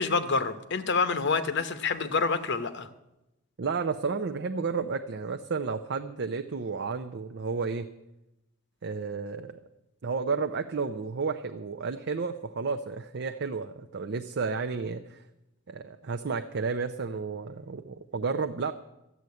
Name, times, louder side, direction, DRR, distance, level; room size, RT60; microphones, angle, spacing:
voice 1, 0.0-2.9, left 4 dB, 55° left, 11 dB, 0.8 m, -27 dB
voice 2, 3.6-7.9 8.8-9.6 10.0-15.2 15.7-18.7, right 4 dB, 55° right, 6 dB, 0.6 m, -32 dB
13.5 x 7.8 x 9.5 m, 0.93 s
head